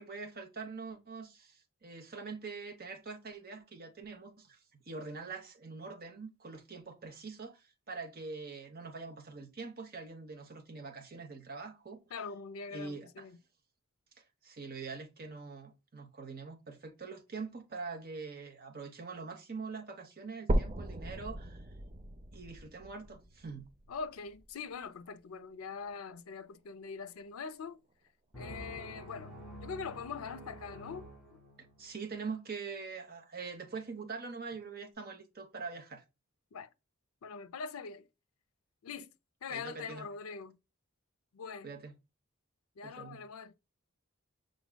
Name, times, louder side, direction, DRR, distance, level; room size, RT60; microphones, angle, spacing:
voice 1, 0.0-4.6 4.9-12.0 12.7-13.2 14.4-21.6 22.3-23.7 31.8-36.0 39.5-40.1 41.6-41.9 42.8-43.2, right 4 dB, 45° right, 0.9 m, -44 dB
voice 2, 12.1-13.4 23.9-27.8 28.4-31.4 36.5-36.7 37.2-38.1 38.8-39.1 39.4-40.6 41.3-41.7 42.8-43.5, left 5 dB, 80° left, 0.5 m, -43 dB
sound 1, 20.5-24.5 25.1-25.2 25.7-25.8 26.2-26.3 27.1-27.2, right 1 dB, 25° right, 0.5 m, -36 dB
sound 2, 28.3-31.9, equal, ahead, 2.5 m, -48 dB
6.1 x 3.8 x 2.2 m
head